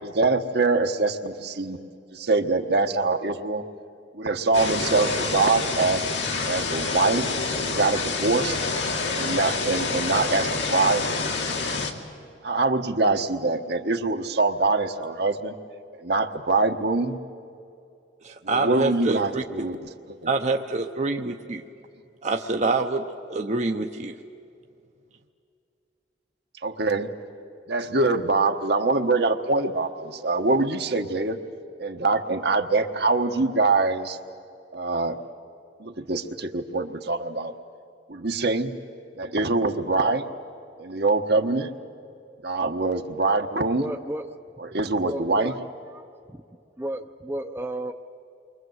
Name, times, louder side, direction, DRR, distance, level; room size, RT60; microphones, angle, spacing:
voice 1, 0.0-1.8 2.1-3.6 4.1-6.0 6.5-7.3 7.6-8.6 9.0-11.0 12.4-15.5 16.0-17.2 18.4-20.3 26.6-27.1 27.7-31.4 31.8-34.2 34.7-35.2 35.8-37.5 38.1-38.7 39.2-40.2 40.8-41.7 42.4-43.8 44.7-45.5, right 3 dB, 65° right, 6 dB, 1.3 m, -24 dB
sound 1, 4.5-11.9, left 4 dB, 80° left, 2.2 m, -27 dB
voice 2, 18.2-19.4 20.3-21.6 22.2-23.0 23.3-24.1, right 3 dB, 40° right, 4 dB, 0.9 m, -26 dB
voice 3, 43.6-44.3 44.7-45.6 45.9-46.4 46.8-47.9, right 1 dB, 15° right, 5 dB, 0.7 m, -33 dB
29.0 x 24.0 x 8.0 m, 2.5 s
head